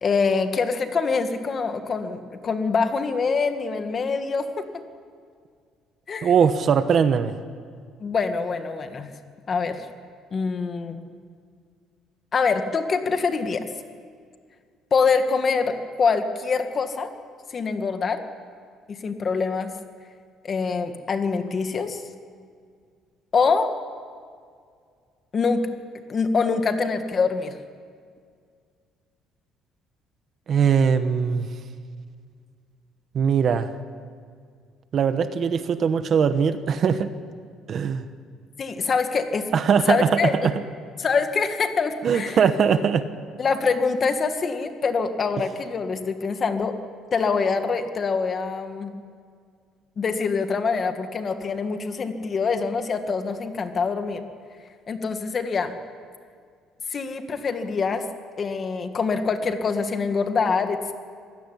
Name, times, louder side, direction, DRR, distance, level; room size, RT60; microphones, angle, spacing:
voice 1, 0.0-4.7 6.1-6.3 8.0-9.1 9.5-9.9 10.3-11.0 12.3-13.6 14.9-17.1 17.5-18.3 18.9-19.7 20.4-22.0 23.3-23.7 25.3-25.7 26.1-27.6 38.6-39.5 39.9-40.5 41.0-42.4 43.4-46.8 47.1-49.0 50.0-54.2 54.9-55.7 56.9-58.1 58.4-60.9, left 5 dB, 30° left, 7 dB, 1.7 m, -24 dB
voice 2, 6.2-7.3 30.5-31.5 33.1-33.7 34.9-37.1 37.7-38.0 39.5-40.5 42.0-43.0, right 7 dB, 40° right, 10 dB, 1.1 m, -21 dB
25.5 x 17.5 x 10.0 m, 2.1 s
cardioid pair, 160°, 0 cm